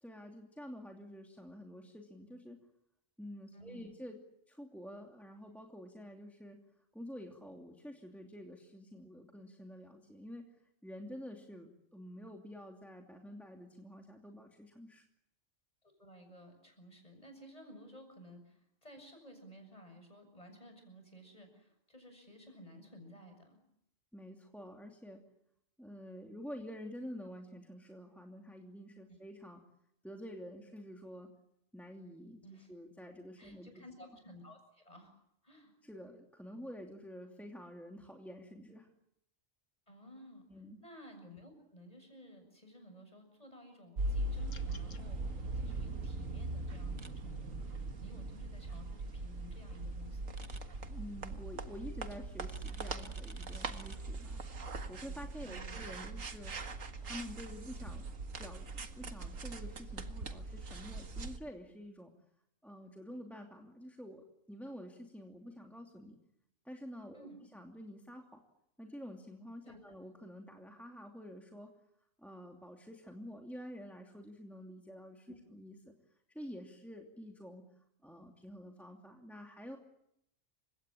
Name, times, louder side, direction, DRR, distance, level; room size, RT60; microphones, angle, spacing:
voice 1, 0.0-2.6 3.2-4.2 4.5-6.6 6.9-10.4 10.8-15.1 24.1-25.2 25.8-29.6 30.0-31.3 31.7-32.4 32.7-33.7 35.8-38.9 40.5-40.8 50.9-54.4 54.9-56.5 57.0-58.1 58.4-58.7 59.0-62.1 62.6-66.2 66.6-68.4 68.8-71.7 72.2-75.9 76.3-79.8, equal, ahead, 2 dB, 2.7 m, -49 dB
voice 2, 3.5-3.9 16.0-23.6 32.4-32.7 33.4-35.1 35.4-35.7 39.9-40.5 40.8-50.4 55.4-55.9 67.1-67.4 69.6-69.8 75.3-75.4, equal, 30° left, 5 dB, 7.3 m, -55 dB
sound 1, 44.0-61.4, right 2 dB, 90° right, 2.0 m, -41 dB
sound 2, 44.5-45.1, left 5 dB, 75° left, 1.6 m, -55 dB
sound 3, 47.0-47.1 50.4-50.6 52.5-54.0, right 3 dB, 25° right, 1.3 m, -53 dB
30.0 x 17.0 x 9.9 m, 0.77 s
omnidirectional pair, 1.3 m